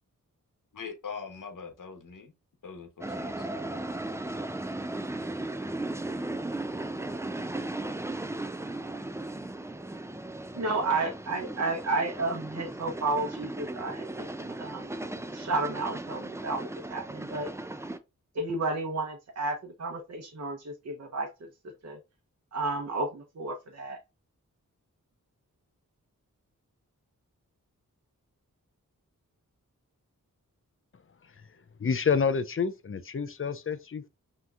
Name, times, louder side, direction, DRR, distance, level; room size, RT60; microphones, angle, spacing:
voice 1, 0.7-2.3 2.6-3.8, left 5 dB, 70° left, 1.1 m, -42 dB
sound 1, 3.0-18.0, right 2 dB, 10° right, 0.4 m, -36 dB
voice 2, 10.5-14.9 15.3-17.5 18.3-21.3 21.8-22.0 22.5-24.0, right 3 dB, 50° right, 0.9 m, -32 dB
voice 3, 31.8-34.1, left 6 dB, 40° left, 0.5 m, -28 dB
5.6 x 2.9 x 2.4 m
wide cardioid pair, 65°, 32 cm